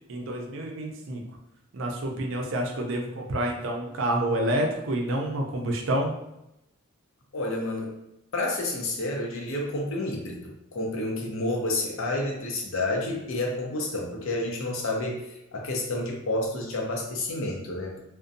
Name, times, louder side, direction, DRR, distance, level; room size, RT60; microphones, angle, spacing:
voice 1, 0.1-1.2 1.7-6.2, right 1 dB, 60° right, 1 dB, 0.5 m, -28 dB
voice 2, 7.3-7.9 8.3-18.0, left 2 dB, 65° left, 0 dB, 0.6 m, -30 dB
2.5 x 2.1 x 2.5 m, 0.87 s
head